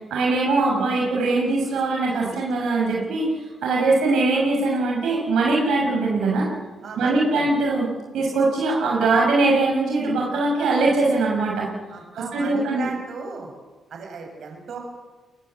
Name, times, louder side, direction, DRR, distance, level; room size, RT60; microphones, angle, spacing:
voice 1, 0.1-6.5 7.0-7.9 8.1-11.7 12.1-12.9, right 3 dB, 75° right, -2 dB, 6.3 m, -21 dB
voice 2, 6.8-7.5 11.9-13.5 13.9-14.8, right 4 dB, 60° right, 3 dB, 7.4 m, -35 dB
22.5 x 21.5 x 8.3 m, 1.3 s
cardioid pair, 90°, 0 cm